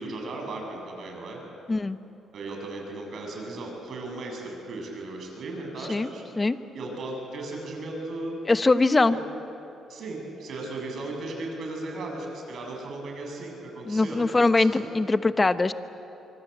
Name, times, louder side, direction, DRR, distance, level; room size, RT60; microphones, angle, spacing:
voice 1, 0.0-1.4 2.3-6.2 6.7-8.4 9.1-9.2 9.9-14.9, right 2 dB, 60° right, 1 dB, 7.4 m, -36 dB
voice 2, 8.5-9.2 13.9-15.7, left 3 dB, 25° left, 11 dB, 1.0 m, -22 dB
25.0 x 24.0 x 8.1 m, 2.9 s
cardioid pair, 90°, 0 cm